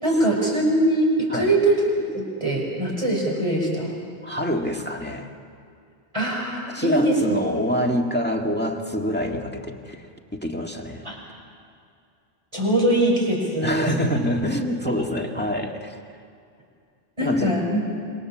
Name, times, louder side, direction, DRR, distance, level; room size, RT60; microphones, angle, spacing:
voice 1, 0.0-4.0 6.1-7.4 11.0-11.2 12.5-14.2 17.2-17.8, right 1 dB, 30° right, -3 dB, 6.4 m, -22 dB
voice 2, 4.2-5.3 6.7-10.0 10.3-11.1 13.6-16.0 17.2-17.6, equal, 10° left, 1 dB, 1.9 m, -26 dB
27.0 x 24.0 x 7.5 m, 2.4 s
omnidirectional pair, 1.1 m